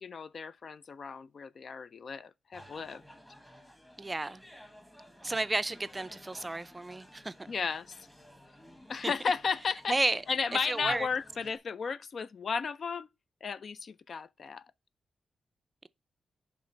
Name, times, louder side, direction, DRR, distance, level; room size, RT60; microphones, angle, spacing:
voice 1, 0.0-3.0 7.5-7.9 8.9-10.0 10.3-13.1 13.4-14.7, left 5 dB, 55° left, 0.4 m, -34 dB
sound 1, 2.5-11.6, equal, 10° left, 1.3 m, -54 dB
voice 2, 4.0-4.4 5.2-7.3 9.0-9.1 9.9-10.2 10.6-11.1, right 2 dB, 20° right, 0.4 m, -32 dB
10.0 x 3.5 x 4.3 m
cardioid pair, 100°, 0 cm